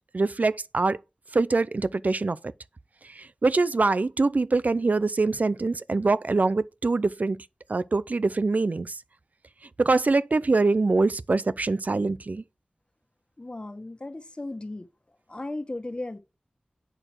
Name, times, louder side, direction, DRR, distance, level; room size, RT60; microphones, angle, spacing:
voice 1, 0.1-1.0 1.3-2.4 3.0-7.4 7.7-9.0 9.8-12.4, right 3 dB, 60° right, 0.5 m, -24 dB
voice 2, 13.4-14.9 15.3-16.2, left 2 dB, 35° left, 1.4 m, -35 dB
8.9 x 6.1 x 4.5 m
wide cardioid pair, 60°, 3 cm